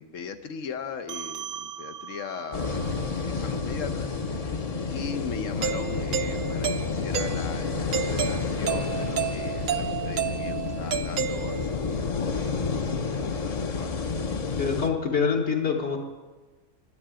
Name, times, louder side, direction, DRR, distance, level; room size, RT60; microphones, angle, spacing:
voice 1, 0.0-2.8 3.2-4.1 4.4-4.6 4.9-12.5 13.0-13.9, left 6 dB, 90° left, 8 dB, 1.2 m, -38 dB
sound 1, 1.1-5.9, right 9 dB, 85° right, 1.2 m, -42 dB
sound 2, 2.5-14.9, left 4 dB, 40° left, 0.6 m, -30 dB
Doorbell, 5.6-11.9, right 9 dB, 60° right, 0.6 m, -31 dB
voice 2, 14.6-16.0, left 6 dB, 65° left, -1 dB, 1.5 m, -25 dB
10.0 x 8.5 x 8.8 m, 1.2 s
omnidirectional pair, 1.3 m